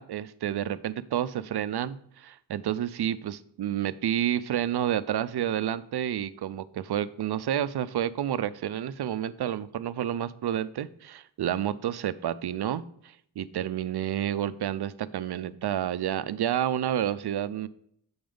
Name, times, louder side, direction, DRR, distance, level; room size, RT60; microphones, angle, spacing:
voice 1, 0.0-12.8 13.4-17.7, right 10 dB, 65° right, 15 dB, 0.5 m, -30 dB
7.8 x 5.2 x 3.7 m, 0.68 s
wide cardioid pair, 120°, 43 cm